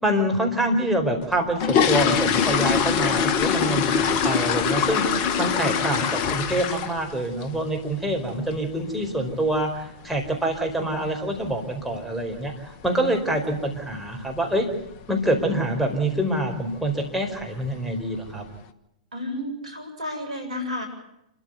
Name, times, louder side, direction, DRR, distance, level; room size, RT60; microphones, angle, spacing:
voice 1, 0.0-5.0 5.4-12.5 12.8-14.7 15.1-18.4, right 1 dB, ahead, 0 dB, 4.7 m, -26 dB
sound 1, 1.2-7.1 7.4-7.7 8.1-8.2 8.5-8.7 9.0-9.3 9.5-9.6 10.2-10.3 10.6-10.7 11.2-11.5 11.8-11.9 12.3-12.5 12.8-12.9 13.4-13.5 14.1-14.4 14.7-15.0 15.4-15.5 15.9-16.0 16.8-16.9 17.3-17.8 18.3-18.4, left 7 dB, 40° left, 1.4 m, -23 dB
voice 2, 19.1-20.9, left 1 dB, 75° right, 6 dB, 7.6 m, -31 dB
28.0 x 14.0 x 8.3 m, 0.88 s
figure-of-eight pair, 110°, 4 cm